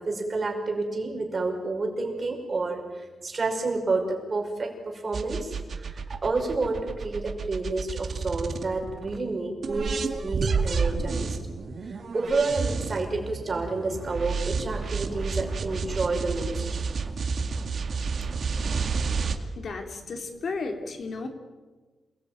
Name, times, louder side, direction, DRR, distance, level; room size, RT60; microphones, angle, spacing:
voice 1, 0.0-11.4 11.8-16.8, right 3 dB, 35° right, 2 dB, 5.6 m, -29 dB
sound 1, 5.1-9.2 9.6-19.4, right 5 dB, 50° right, 2.2 m, -30 dB
voice 2, 19.6-21.3, left 3 dB, 55° left, 5 dB, 3.3 m, -33 dB
28.0 x 21.0 x 9.2 m, 1.3 s
wide cardioid pair, 155°, 0 cm